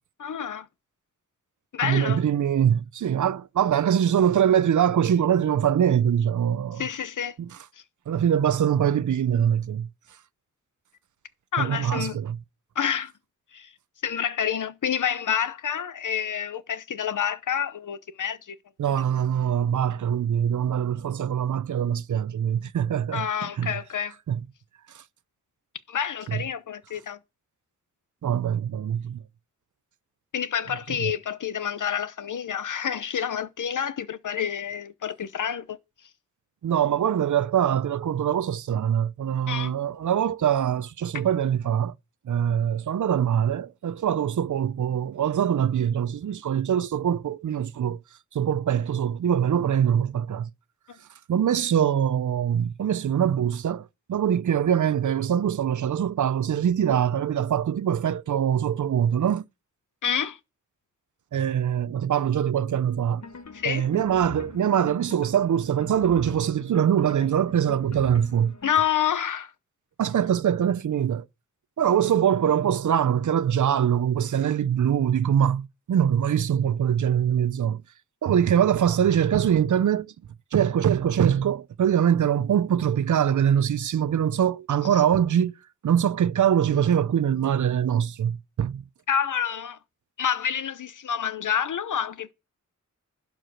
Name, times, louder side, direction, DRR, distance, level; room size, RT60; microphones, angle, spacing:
voice 1, 0.2-0.7 1.7-2.2 6.8-7.3 11.5-12.2 12.8-13.1 13.5-13.7 14.0-18.6 23.1-24.1 25.9-27.2 30.3-35.8 39.5-39.7 60.0-60.4 63.5-63.9 68.6-69.5 89.1-89.8 90.2-92.3, left 8 dB, 75° left, 0.8 m, -28 dB
voice 2, 1.8-6.9 7.4-7.5 8.1-9.9 11.6-12.4 18.8-23.3 23.6-23.7 24.3-24.4 24.9-25.0 26.3-26.4 28.2-29.2 31.0-31.1 36.6-41.9 42.3-48.0 48.3-50.5 51.3-59.4 61.3-63.2 63.7-68.5 70.0-71.2 71.8-77.8 78.2-80.1 80.5-85.5 85.8-88.8, right 9 dB, 70° right, 0.6 m, -23 dB
sound 1, 63.2-68.7, left 4 dB, 60° left, 1.1 m, -43 dB
11.5 x 4.7 x 6.2 m
wide cardioid pair, 95°, 31 cm